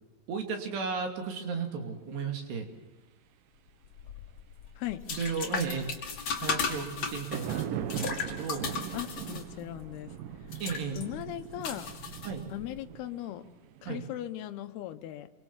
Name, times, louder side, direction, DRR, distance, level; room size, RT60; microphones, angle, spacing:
voice 1, 0.3-2.7 5.1-5.9 6.4-8.7 10.6-11.1 12.2-12.4 13.9-14.0, right 5 dB, 85° right, 3 dB, 4.9 m, -34 dB
sound 1, 3.9-12.8, left 5 dB, 45° left, 3.3 m, -37 dB
sound 2, 7.0-14.0, right 11 dB, 70° right, 2.4 m, -40 dB
voice 2, 8.9-10.1 10.9-11.9 12.5-13.4 13.8-15.3, left 13 dB, 75° left, 8 dB, 3.0 m, -38 dB
28.0 x 23.5 x 7.4 m, 1.1 s
omnidirectional pair, 4.7 m